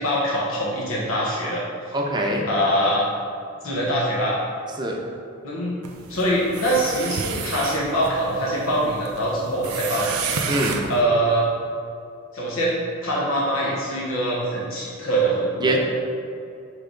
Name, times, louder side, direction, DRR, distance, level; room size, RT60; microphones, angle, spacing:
voice 1, 0.0-1.9 2.4-3.1 3.6-4.4 5.4-5.8 6.1-10.2 10.9-11.5 12.3-15.8, right 1 dB, 70° left, -5 dB, 1.1 m, -23 dB
voice 2, 1.9-2.5 4.8-5.0 10.5-10.9 15.6-15.8, right 1 dB, 20° right, 0 dB, 0.8 m, -23 dB
sound 1, 5.8-11.0, right 5 dB, 90° right, 0.6 m, -31 dB
6.7 x 3.5 x 5.1 m, 2.4 s
head